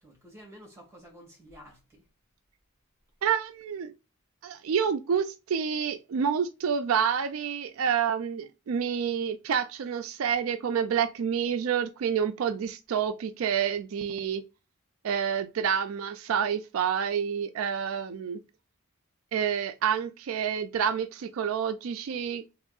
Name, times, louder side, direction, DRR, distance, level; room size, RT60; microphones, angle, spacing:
voice 1, 0.0-2.0, equal, 10° right, 1.7 m, -51 dB
voice 2, 3.2-3.9 4.4-14.4 15.0-18.4 19.3-22.5, right 7 dB, 75° right, 0.3 m, -28 dB
3.6 x 3.0 x 2.3 m
head